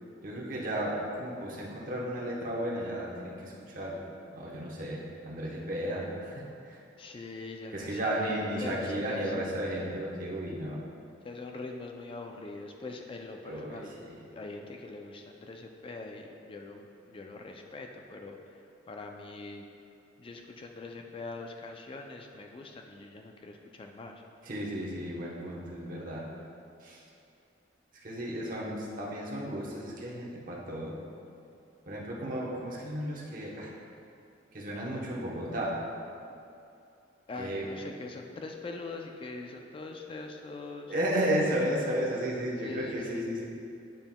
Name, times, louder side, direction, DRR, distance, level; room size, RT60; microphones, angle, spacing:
voice 1, 0.2-4.1 4.3-6.8 7.7-10.8 13.5-14.1 24.4-26.3 26.8-27.0 28.0-31.0 31.9-33.7 34.5-35.8 37.4-37.7 40.9-43.4, right 1 dB, 45° right, -3 dB, 0.9 m, -33 dB
voice 2, 7.0-9.3 11.2-13.9 14.3-18.6 18.9-19.7 20.2-24.2 37.3-40.9 42.6-43.3, left 3 dB, 30° left, 3 dB, 0.3 m, -42 dB
9.0 x 5.4 x 2.2 m, 2.6 s
head